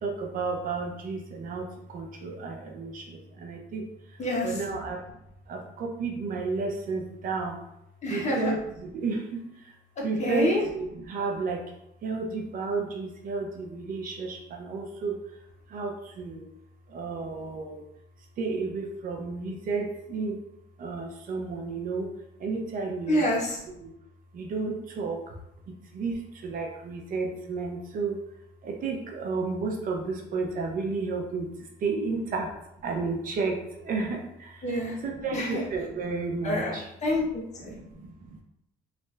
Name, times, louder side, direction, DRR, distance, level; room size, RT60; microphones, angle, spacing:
voice 1, 0.0-3.9 4.4-5.2 5.5-7.6 8.1-9.4 10.0-11.6 12.0-15.2 15.7-16.5 16.9-17.8 18.4-20.4 20.8-22.1 22.4-23.3 23.8-23.9 24.3-25.4 25.9-28.2 28.6-31.5 31.8-32.5 32.8-34.8 35.0-36.9 37.6-38.4, right 4 dB, 55° right, 2 dB, 0.7 m, -32 dB
voice 2, 4.2-4.6 8.0-8.5 10.0-10.6 23.1-23.6 34.6-35.0 35.3-35.6 36.4-37.8, left 1 dB, 45° left, -3 dB, 1.1 m, -27 dB
3.2 x 2.5 x 3.2 m, 0.79 s
cardioid pair, 110°, 17 cm